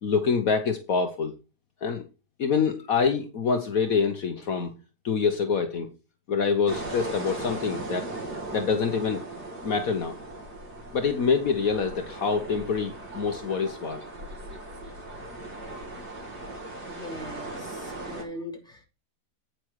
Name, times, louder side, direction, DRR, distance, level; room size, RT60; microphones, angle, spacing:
voice 1, 0.0-1.3 1.8-2.0 2.4-4.8 5.0-5.9 6.3-8.1 8.5-9.2 9.6-10.2 10.9-14.0, left 5 dB, 60° left, 6 dB, 1.4 m, -26 dB
sound 1, 6.7-18.2, right 2 dB, 75° right, 3.1 m, -38 dB
voice 2, 16.9-18.9, left 1 dB, ahead, 0 dB, 2.7 m, -40 dB
9.1 x 6.1 x 4.7 m, 0.31 s
omnidirectional pair, 1.7 m